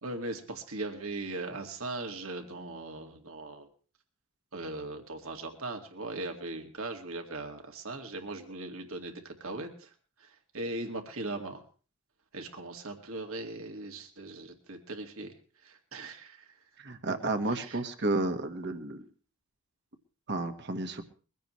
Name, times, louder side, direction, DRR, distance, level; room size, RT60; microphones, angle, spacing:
voice 1, 0.0-3.7 4.5-9.9 10.2-11.6 12.3-15.3 15.6-16.5 17.5-17.8, right 2 dB, 70° right, 4 dB, 2.1 m, -39 dB
voice 2, 16.8-19.0 20.3-21.0, right 2 dB, 50° right, 7 dB, 1.5 m, -31 dB
22.5 x 16.0 x 3.2 m, 0.39 s
head